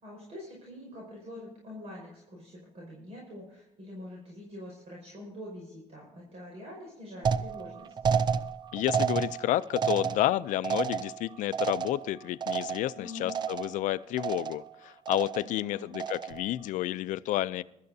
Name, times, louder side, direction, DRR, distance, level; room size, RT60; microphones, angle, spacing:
voice 1, 0.0-7.9 12.9-13.3 15.4-15.9, left 1 dB, 55° right, -2 dB, 5.5 m, -45 dB
sound 1, 7.3-13.0 13.3-13.9 14.2-14.7 15.1-15.6 15.9-16.5, right 7 dB, 35° right, 0.5 m, -31 dB
voice 2, 8.7-17.6, left 14 dB, 90° left, 16 dB, 0.4 m, -30 dB
21.5 x 13.0 x 2.7 m, 0.87 s
cardioid pair, 135°, 13 cm